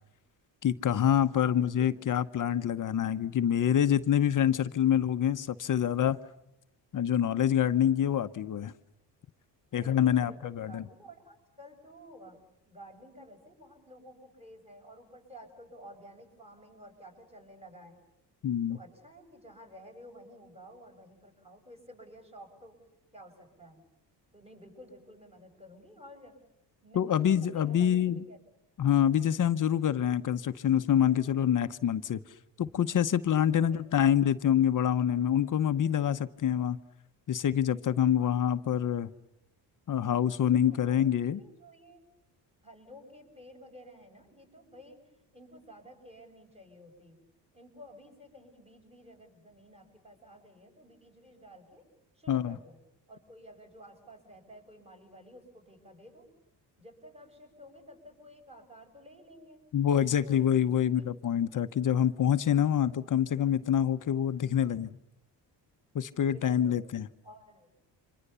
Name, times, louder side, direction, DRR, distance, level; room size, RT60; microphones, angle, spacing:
voice 1, 0.6-6.2 6.9-8.7 9.7-10.8 18.4-18.8 26.9-28.2 28.8-32.2 32.6-36.8 37.3-39.1 39.9-41.4 52.3-52.6 59.7-64.9 65.9-67.1, left 9 dB, 45° left, 1.0 m, -26 dB
voice 2, 1.3-2.1 9.8-12.4 12.7-18.0 18.7-22.8 23.1-23.8 24.3-26.3 26.8-28.4 33.5-33.9 38.2-38.5 40.5-41.0 41.3-42.0 42.6-45.0 45.3-47.2 47.5-51.9 52.2-52.8 53.1-56.3 56.8-59.7 60.2-61.1 66.2-66.9 67.2-67.7, equal, 15° right, 7.1 m, -52 dB
30.0 x 26.0 x 6.9 m
cardioid pair, 125°, 43 cm